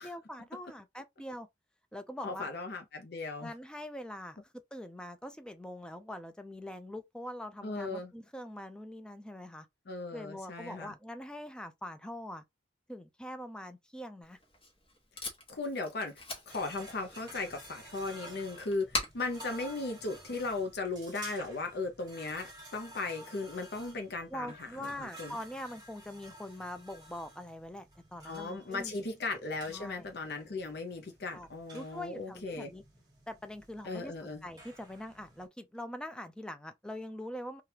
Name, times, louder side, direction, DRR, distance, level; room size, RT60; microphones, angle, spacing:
voice 1, 0.0-1.5 1.9-2.5 3.4-4.4 4.7-9.7 10.1-12.4 12.9-14.4 24.3-29.1 29.7-30.1 31.3-32.8 33.3-37.6, left 1 dB, 5° left, 0.4 m, -43 dB
voice 2, 2.2-3.5 7.6-8.1 9.9-10.9 15.5-25.4 28.3-32.7 33.8-34.5, left 3 dB, 60° left, 0.6 m, -37 dB
Packing tape duct tape, 14.2-20.7, left 2 dB, 30° left, 1.1 m, -43 dB
sound 1, 16.5-35.5, right 1 dB, 20° right, 1.2 m, -53 dB
3.2 x 2.4 x 2.8 m
head